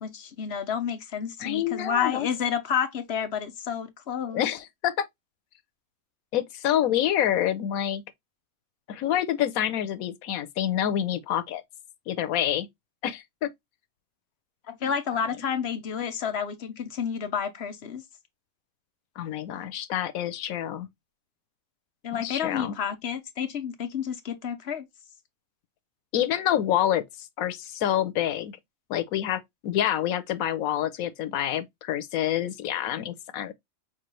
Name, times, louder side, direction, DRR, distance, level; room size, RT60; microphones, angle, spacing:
voice 1, 0.0-4.4 14.7-18.0 22.0-24.9, left 7 dB, 55° left, 0.9 m, -30 dB
voice 2, 1.4-2.3 4.3-5.1 6.3-8.0 8.9-11.6 12.1-12.7 13.0-13.5 14.8-14.9 19.2-20.9 22.1-22.7 26.1-28.6 28.9-33.5, left 11 dB, 90° left, 1.1 m, -27 dB
6.0 x 2.4 x 3.0 m
omnidirectional pair, 1.4 m